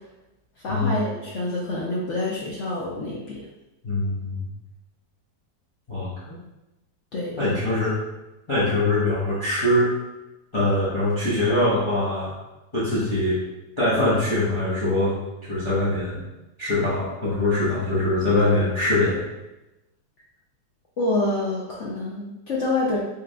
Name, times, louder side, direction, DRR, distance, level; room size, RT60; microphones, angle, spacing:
voice 1, 0.6-3.4 7.1-7.5 21.0-23.0, left 2 dB, 60° left, -5 dB, 0.7 m, -27 dB
voice 2, 3.8-4.5 5.9-6.4 7.4-7.9 8.5-9.9 10.5-12.3 12.7-13.4 13.8-15.2 15.5-16.2 16.6-19.2, left 1 dB, 20° left, -10 dB, 1.0 m, -23 dB
4.7 x 3.4 x 2.4 m, 0.97 s
omnidirectional pair, 2.0 m